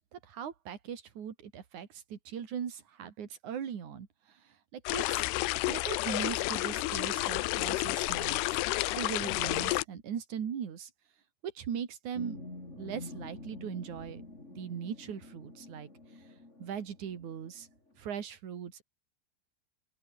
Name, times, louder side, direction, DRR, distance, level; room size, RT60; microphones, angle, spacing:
voice 1, 0.1-5.2 5.7-10.9 11.4-12.4 12.8-14.2 14.6-15.9 16.6-17.7 18.0-18.8, right 8 dB, 45° right, 3.6 m, -40 dB
sound 1, 4.9-9.8, left 20 dB, 80° left, 2.5 m, -31 dB
sound 2, 12.1-17.9, left 2 dB, 15° left, 4.8 m, -47 dB
open air
omnidirectional pair, 5.1 m